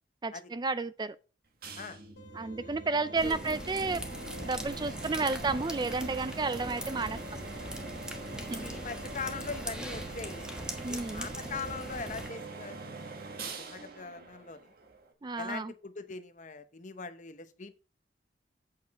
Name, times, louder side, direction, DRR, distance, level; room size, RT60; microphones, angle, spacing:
voice 1, 0.2-1.2 2.3-4.0 4.4-7.2 8.5-8.7 10.8-11.3 15.2-15.7, right 3 dB, 25° right, 0.4 m, -32 dB
sound 1, 1.6-15.1, right 3 dB, 55° right, 1.6 m, -43 dB
sound 2, 2.2-7.2, right 4 dB, 80° left, 2.4 m, -52 dB
sound 3, 3.1-12.3, equal, 5° right, 1.2 m, -41 dB
voice 2, 8.5-10.5 10.9-14.7 15.4-17.7, left 4 dB, 45° left, 0.9 m, -41 dB
8.6 x 6.5 x 4.2 m
head